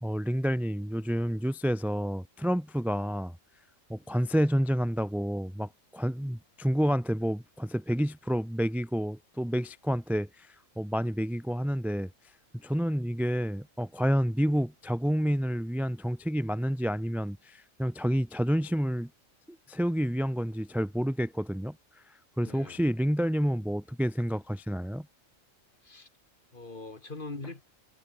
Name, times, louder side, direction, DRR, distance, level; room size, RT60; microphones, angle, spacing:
voice 1, 0.0-3.4 3.9-12.1 12.6-19.1 19.5-21.8 22.4-25.1, equal, ahead, 0.6 m, -29 dB
voice 2, 22.4-22.8 25.8-26.1 26.5-27.6, left 3 dB, 40° left, 2.6 m, -42 dB
omnidirectional pair, 1.4 m